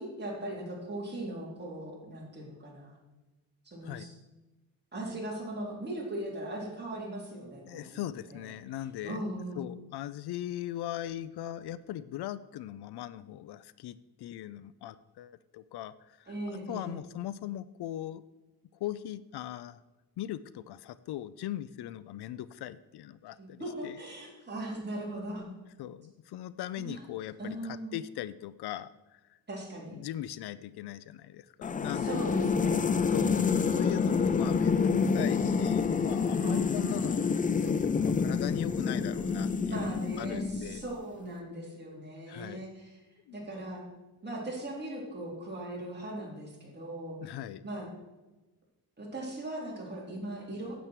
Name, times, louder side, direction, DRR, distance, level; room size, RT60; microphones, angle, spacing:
voice 1, 0.0-3.0 3.6-4.1 4.9-8.5 9.0-9.7 16.3-17.0 23.4-25.5 26.8-27.0 27.4-28.0 29.5-30.0 32.0-33.7 36.4-36.8 39.7-43.1 43.3-43.8 44.2-47.4 47.6-47.9 49.0-50.8, right 1 dB, 25° right, -3 dB, 3.5 m, -39 dB
voice 2, 7.7-9.2 9.6-16.3 16.7-18.2 18.8-19.8 20.2-24.0 25.8-29.2 29.9-32.2 33.1-37.3 37.6-40.8 42.3-42.7 43.3-43.4 47.2-47.7, left 12 dB, 80° left, 16 dB, 0.5 m, -39 dB
sound 1, 31.6-41.0, left 5 dB, 20° left, 0.4 m, -28 dB
9.1 x 8.4 x 4.6 m, 1.1 s
cardioid pair, 95°, 38 cm